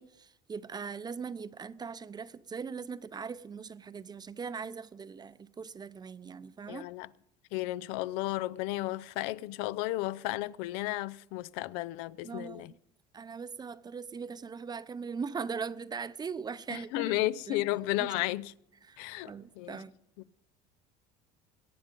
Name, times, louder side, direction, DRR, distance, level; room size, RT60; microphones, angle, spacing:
voice 1, 0.0-6.9 12.2-12.8 13.1-17.1 17.5-18.3 18.8-19.9, right 5 dB, 20° right, 0.6 m, -40 dB
voice 2, 6.7-7.1 7.5-12.7 16.7-18.5 19.0-19.8, left 17 dB, 80° left, 0.5 m, -33 dB
22.0 x 9.1 x 5.2 m
supercardioid pair, 110°, 18 cm